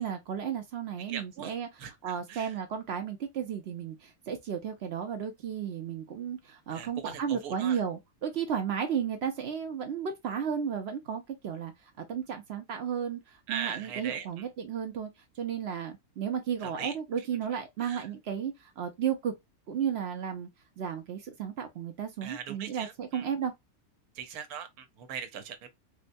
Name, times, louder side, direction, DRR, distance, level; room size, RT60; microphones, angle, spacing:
voice 1, 0.0-1.7 2.0-11.7 12.0-15.1 15.4-19.3 19.7-20.5 20.8-23.5, right 8 dB, 60° right, 0.7 m, -33 dB
voice 2, 1.1-1.5 1.8-2.6 6.7-7.8 13.5-14.4 16.6-16.9 17.8-18.1 22.2-23.3 24.1-25.7, right 8 dB, 80° right, 1.2 m, -40 dB
3.8 x 2.2 x 2.5 m
omnidirectional pair, 1.6 m